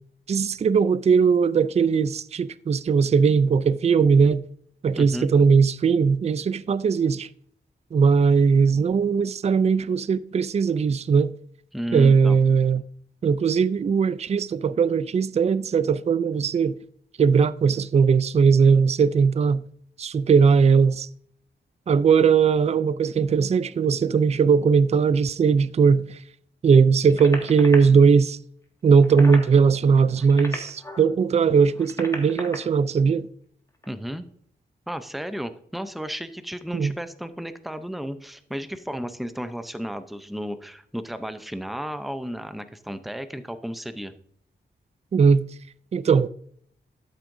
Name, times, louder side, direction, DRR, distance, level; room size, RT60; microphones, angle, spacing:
voice 1, 0.3-4.4 4.8-7.3 7.9-11.3 11.9-12.8 13.2-16.8 17.2-19.6 20.0-21.1 21.9-26.2 26.6-28.4 28.8-33.3 36.7-36.9 45.1-45.4 45.9-46.3, right 5 dB, 35° right, 0.4 m, -19 dB
voice 2, 4.9-5.3 11.7-12.4 33.9-34.2 34.9-44.1, equal, ahead, 0.6 m, -33 dB
sound 1, 27.1-27.8 28.9-29.5 30.1-31.1 31.7-32.6 33.7-33.9, left 1 dB, 15° left, 1.9 m, -35 dB
13.0 x 7.6 x 2.6 m
wide cardioid pair, 100°, 18 cm